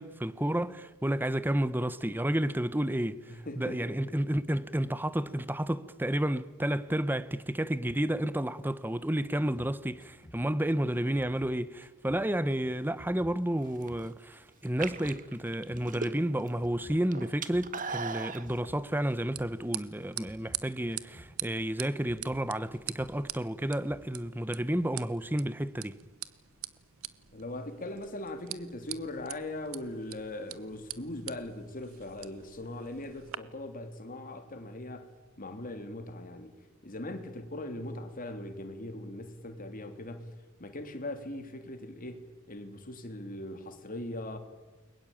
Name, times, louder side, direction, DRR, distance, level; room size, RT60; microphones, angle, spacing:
voice 1, 0.0-26.0, right 1 dB, 10° right, 0.9 m, -31 dB
voice 2, 3.3-4.2 27.3-35.1 35.4-36.5 36.8-40.3 40.6-44.4, left 1 dB, 40° left, 3.2 m, -40 dB
sound 1, 9.5-12.2 12.5-15.2 15.5-18.8 19.1-19.5 19.8-22.5 22.7-23.2 23.4-24.1, equal, 20° left, 5.3 m, -54 dB
sound 2, 13.6-14.1 14.6-16.5 16.8-18.4, right 4 dB, 40° right, 1.6 m, -37 dB
sound 3, 18.5-33.4, right 14 dB, 80° right, 1.2 m, -44 dB
29.5 x 22.5 x 8.8 m
head